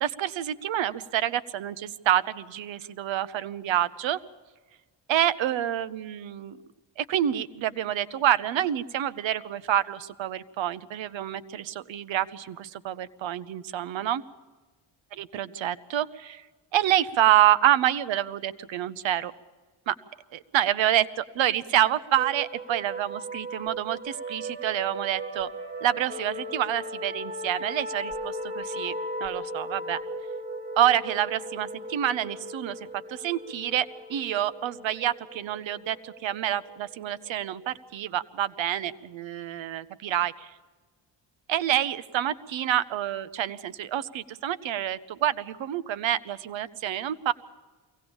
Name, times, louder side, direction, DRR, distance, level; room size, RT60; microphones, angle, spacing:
voice 1, 0.0-4.2 5.1-6.6 7.0-14.2 15.2-16.4 16.7-19.3 19.9-20.0 20.3-25.5 25.8-28.9 29.2-30.0 30.8-32.8 33.1-40.5 41.5-47.3, right 11 dB, 90° right, 16 dB, 0.9 m, -27 dB
sound 1, 22.2-37.5, right 1 dB, 15° right, 3.6 m, -37 dB
23.0 x 18.0 x 7.1 m, 1.3 s
cardioid pair, 115°, 44 cm